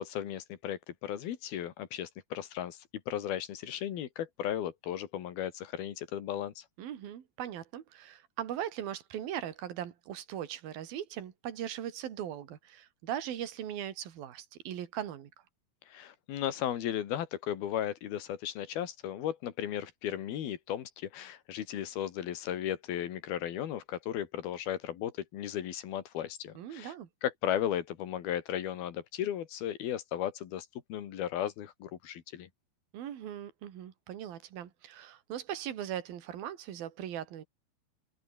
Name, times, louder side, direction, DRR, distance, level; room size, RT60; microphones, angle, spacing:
voice 1, 0.0-2.8 3.1-6.7 15.9-26.9 27.2-32.5, left 11 dB, 70° left, 3.7 m, -35 dB
voice 2, 6.8-15.3 26.6-27.1 32.9-37.4, right 10 dB, 65° right, 4.0 m, -39 dB
omnidirectional pair, 4.7 m